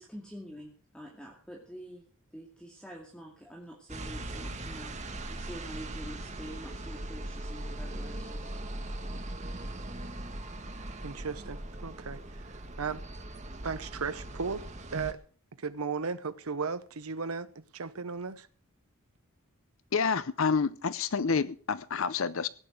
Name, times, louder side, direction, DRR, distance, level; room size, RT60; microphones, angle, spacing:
voice 1, 0.0-2.1 2.3-8.5, equal, 5° left, 2.3 m, -47 dB
sound 1, 3.9-15.1, right 1 dB, 35° right, 1.6 m, -40 dB
voice 2, 10.7-13.0 13.6-14.7 14.9-15.2 15.6-18.5, right 5 dB, 85° right, 0.9 m, -36 dB
voice 3, 19.9-22.5, left 5 dB, 70° left, 0.7 m, -28 dB
16.5 x 8.9 x 6.5 m
head